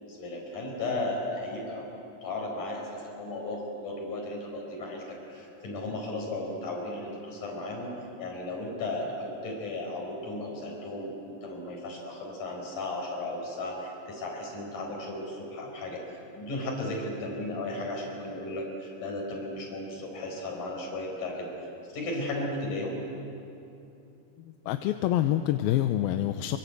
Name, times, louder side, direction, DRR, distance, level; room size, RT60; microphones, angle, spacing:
voice 1, 0.1-7.9 8.2-16.0 16.4-21.5 21.9-23.0, left 2 dB, 60° left, 0 dB, 6.4 m, -35 dB
voice 2, 24.4-26.6, left 12 dB, 85° left, 8 dB, 2.6 m, -27 dB
26.5 x 24.0 x 8.1 m, 2.8 s
omnidirectional pair, 4.2 m